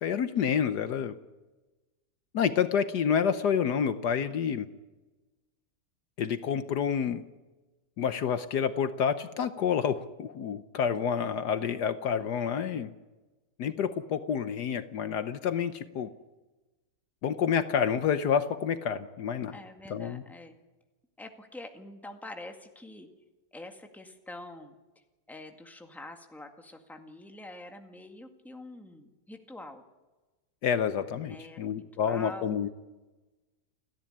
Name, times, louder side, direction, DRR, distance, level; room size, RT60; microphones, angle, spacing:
voice 1, 0.0-1.1 2.3-4.7 6.2-7.2 8.0-12.9 13.6-16.1 17.2-19.6 19.9-20.2 30.6-32.7, left 7 dB, 65° left, 11 dB, 1.4 m, -28 dB
voice 2, 19.5-20.6 21.2-23.1 23.5-24.7 25.3-29.8 31.2-32.5, left 2 dB, ahead, 5 dB, 1.7 m, -46 dB
29.5 x 10.5 x 10.0 m, 1.2 s
omnidirectional pair, 1.9 m